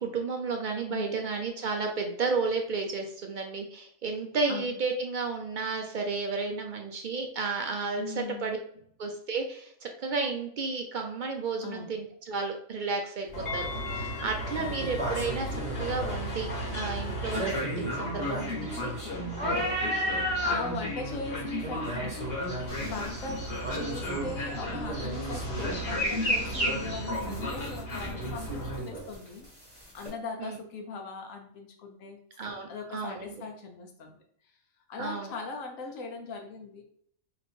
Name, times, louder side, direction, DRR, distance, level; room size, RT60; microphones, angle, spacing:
voice 1, 0.0-8.6 9.0-18.9 26.7-26.9 30.4-30.6 32.4-33.4 35.0-35.3, right 4 dB, 60° right, 3 dB, 0.5 m, -32 dB
voice 2, 0.9-1.2 4.5-4.7 8.0-8.5 11.6-11.9 14.6-14.8 18.1-18.6 20.1-22.3 22.8-23.4 23.7-29.5 29.9-32.2 32.7-34.1 34.9-36.8, left 4 dB, 70° left, 3 dB, 1.2 m, -39 dB
Train, 13.3-28.8, left 1 dB, 45° left, 1.4 m, -35 dB
sound 1, 13.3-13.4 14.8-16.1 17.3-20.7 21.1-21.3 21.6-23.1 23.6-24.3 24.7-26.7 28.1-29.3 30.0-30.1, equal, 25° right, 1.5 m, -33 dB
sound 2, 22.7-30.1, equal, 5° left, 1.6 m, -47 dB
3.1 x 3.0 x 4.2 m, 0.64 s
omnidirectional pair, 1.4 m